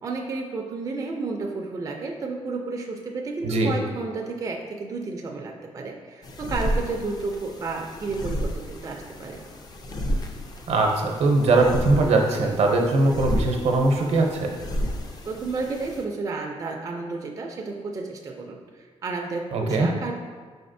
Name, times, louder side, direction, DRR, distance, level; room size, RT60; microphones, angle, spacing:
voice 1, 0.0-9.4 15.2-20.2, right 3 dB, 30° right, 1 dB, 0.4 m, -32 dB
voice 2, 3.4-3.7 10.7-14.6 19.5-19.9, right 2 dB, 70° right, 2 dB, 0.7 m, -21 dB
sound 1, 6.2-16.0, equal, 35° left, 0.5 m, -32 dB
4.8 x 4.1 x 2.6 m, 1.5 s
wide cardioid pair, 140°, 11 cm